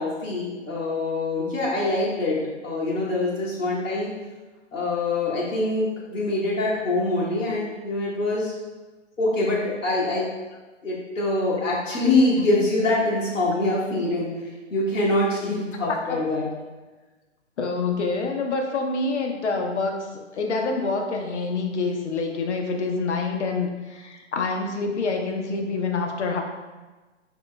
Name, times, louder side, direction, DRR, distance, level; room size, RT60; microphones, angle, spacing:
voice 1, 0.0-4.1 4.7-8.5 9.2-10.2 10.8-16.5, left 2 dB, 85° left, -6 dB, 1.3 m, -24 dB
voice 2, 17.6-26.4, left 3 dB, 65° left, 3 dB, 0.8 m, -27 dB
3.8 x 3.0 x 3.3 m, 1.2 s
hypercardioid pair, 140°, 38 cm